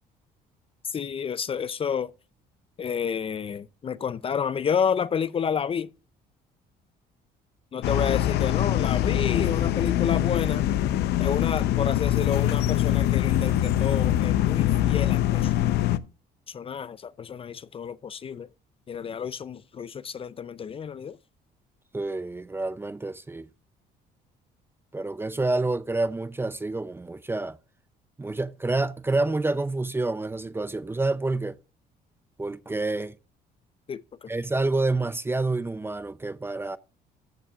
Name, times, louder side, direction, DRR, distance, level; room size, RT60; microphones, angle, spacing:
voice 1, 0.9-2.1 2.8-5.9 7.7-10.7 11.2-15.5 16.5-18.5 18.9-21.2 33.9-34.3, left 7 dB, 35° left, 0.5 m, -30 dB
sound 1, 7.8-16.0, left 12 dB, 75° left, 0.7 m, -23 dB
voice 2, 21.9-23.5 24.9-27.6 28.2-31.6 32.4-33.1 34.3-36.8, right 2 dB, 15° right, 0.5 m, -28 dB
14.5 x 8.6 x 2.4 m
cardioid pair, 110°, 17 cm